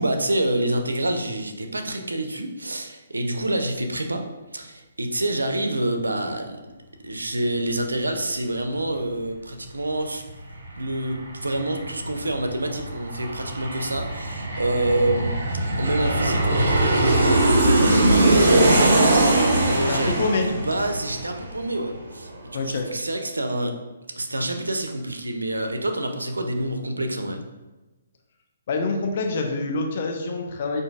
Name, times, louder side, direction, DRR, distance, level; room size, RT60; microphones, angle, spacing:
voice 1, 0.0-4.2 4.5-6.6 7.0-10.2 10.8-15.3 15.8-19.2 19.6-23.7 24.1-27.4, right 1 dB, 85° right, 5 dB, 0.4 m, -27 dB
Aircraft, 10.3-10.4 10.6-22.0 22.3-22.4, right 2 dB, 60° right, 0.8 m, -21 dB
voice 2, 19.9-20.5 22.5-22.9 28.7-30.8, left 3 dB, 50° left, 3 dB, 0.5 m, -26 dB
5.0 x 2.5 x 2.3 m, 1.1 s
figure-of-eight pair, 135°, 0 cm